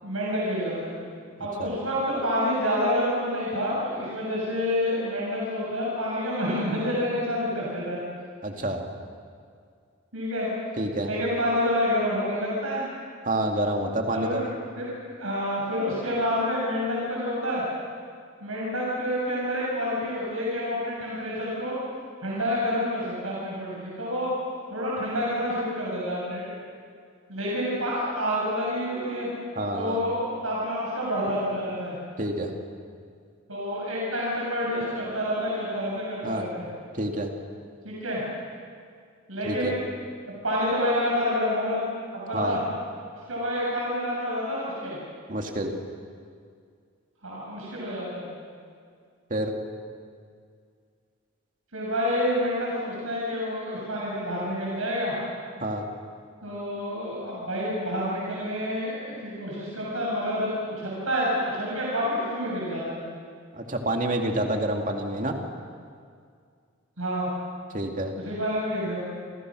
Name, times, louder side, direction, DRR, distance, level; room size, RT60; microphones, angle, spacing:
voice 1, 0.0-1.0 1.4-8.0 10.1-10.5 11.0-12.8 14.1-14.5 14.8-14.9 15.2-17.6 18.4-21.8 22.2-24.3 24.7-26.5 27.3-29.3 29.7-32.0 33.5-36.7 37.8-38.2 39.3-39.8 40.4-41.8 42.1-42.6 43.3-45.0 47.2-48.2 51.7-55.1 56.4-63.0 67.0-67.3 68.2-69.0, equal, 75° right, -5 dB, 7.4 m, -28 dB
voice 2, 8.4-8.8 10.8-11.1 13.3-14.4 29.6-30.0 32.2-32.5 36.2-36.5 36.9-37.3 39.4-39.7 42.3-42.6 45.3-45.7 49.3-49.5 55.6-55.8 63.5-65.4 67.7-68.1, right 1 dB, 35° right, 2 dB, 2.6 m, -28 dB
29.0 x 28.0 x 6.4 m, 2.2 s
head